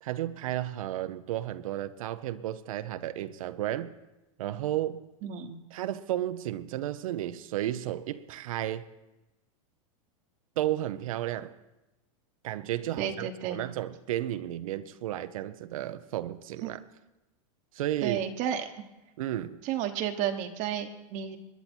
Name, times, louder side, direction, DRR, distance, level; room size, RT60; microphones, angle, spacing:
voice 1, 0.0-3.9 4.4-5.0 5.7-8.9 10.6-11.6 12.4-16.8 17.7-18.2 19.2-19.6, right 13 dB, 75° right, 0.7 m, -33 dB
voice 2, 5.2-5.6 13.0-13.6 16.6-16.7 18.0-18.7 19.6-21.4, right 9 dB, 45° right, 1.1 m, -32 dB
21.0 x 10.5 x 4.4 m
supercardioid pair, 125°, 18 cm